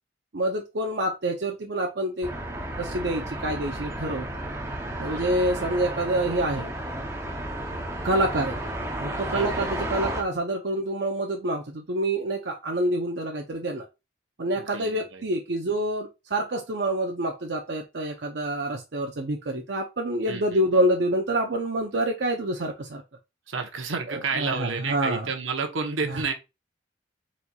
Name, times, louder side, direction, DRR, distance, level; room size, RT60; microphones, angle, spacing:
voice 1, 0.3-2.3 2.8-4.3 5.0-6.7 8.0-8.6 9.0-13.9 14.4-23.0 24.1-25.3 26.0-26.2, right 1 dB, 60° right, 0.6 m, -27 dB
sound 1, 2.2-10.2, right 1 dB, 15° right, 0.6 m, -32 dB
voice 2, 5.0-5.6 9.3-9.7 14.6-15.2 20.3-20.6 23.5-26.3, right 4 dB, 80° right, 0.9 m, -31 dB
4.4 x 4.1 x 2.3 m
head